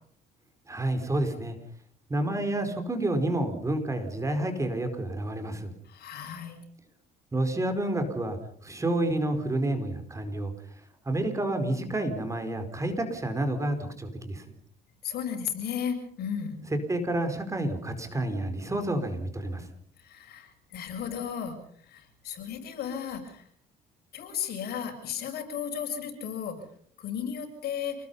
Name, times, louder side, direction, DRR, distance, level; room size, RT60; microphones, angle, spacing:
voice 1, 0.7-1.6 2.1-5.7 7.3-10.5 11.1-14.4 16.9-19.7, right 1 dB, 20° right, 7 dB, 4.6 m, -29 dB
voice 2, 5.9-6.6 15.0-16.6 20.0-21.6 21.8-23.5 24.1-26.6 27.0-28.0, left 8 dB, 70° left, 5 dB, 7.3 m, -34 dB
29.0 x 20.0 x 5.6 m, 0.62 s
cardioid pair, 110°, 17 cm